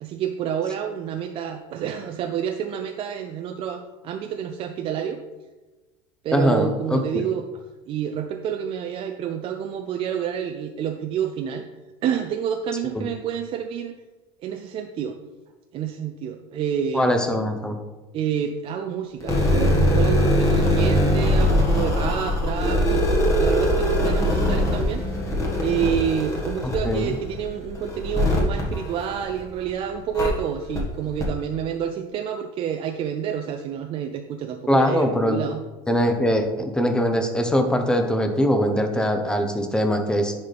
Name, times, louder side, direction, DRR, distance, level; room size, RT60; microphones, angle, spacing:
voice 1, 0.0-5.2 6.2-7.4 7.9-11.7 12.0-13.9 14.4-15.2 15.7-17.1 18.1-23.0 23.4-25.1 25.6-35.6, right 8 dB, 45° right, 6 dB, 0.5 m, -28 dB
voice 2, 6.3-7.2 13.0-13.1 16.9-17.8 26.6-27.1 34.7-35.4 35.9-40.3, equal, 5° left, 6 dB, 0.8 m, -22 dB
sound 1, 19.2-29.6 30.1-30.3 30.7-30.8 31.2-31.3, equal, 25° left, 1.7 m, -22 dB
10.5 x 4.1 x 3.4 m, 1.2 s
supercardioid pair, 115°, 13 cm